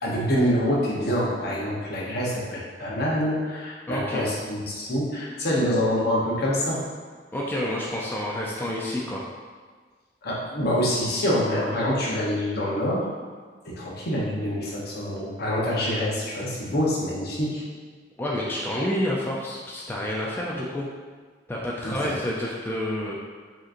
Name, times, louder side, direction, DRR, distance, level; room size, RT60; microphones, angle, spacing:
voice 1, 0.0-6.8 10.2-13.1 13.6-17.6 21.8-22.2, equal, 60° left, -4 dB, 0.9 m, -26 dB
voice 2, 3.9-4.3 7.3-9.3 18.2-20.9 21.5-23.2, left 1 dB, 10° left, -4 dB, 0.4 m, -29 dB
4.8 x 3.0 x 2.5 m, 1.5 s
head